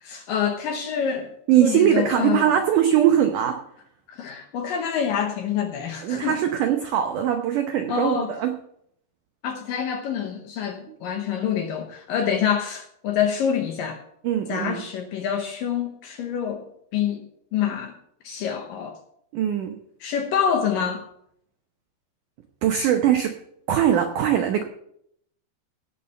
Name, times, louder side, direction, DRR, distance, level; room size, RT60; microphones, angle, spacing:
voice 1, 0.0-1.3 1.6-2.5 4.1-6.4 7.9-8.3 9.4-14.0 14.5-16.7 16.9-17.9 18.2-19.0 20.0-21.0, left 8 dB, 70° left, 4 dB, 2.2 m, -26 dB
voice 2, 1.5-3.6 6.0-8.5 10.9-11.0 14.2-14.8 19.3-19.8 22.6-23.3 23.7-24.6, right 10 dB, 80° right, 5 dB, 1.8 m, -21 dB
17.5 x 5.8 x 6.9 m, 0.71 s
omnidirectional pair, 4.9 m